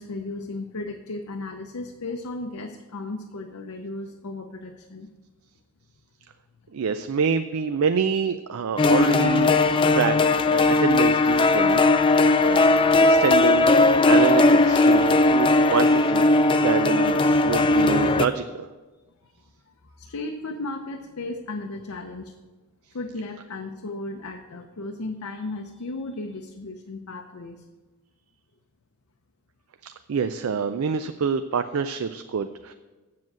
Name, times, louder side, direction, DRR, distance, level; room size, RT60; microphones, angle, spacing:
voice 1, 0.0-5.1 19.2-19.3 19.9-22.4 22.9-27.6, left 2 dB, 80° left, 3 dB, 0.7 m, -35 dB
voice 2, 6.7-9.5 9.9-11.8 12.4-12.7 13.0-16.3 16.6-18.7 29.8-32.7, right 6 dB, 70° right, 10 dB, 0.4 m, -26 dB
sound 1, 8.8-18.3, left 2 dB, 20° left, 0.3 m, -18 dB
7.7 x 7.6 x 7.4 m, 1.2 s
head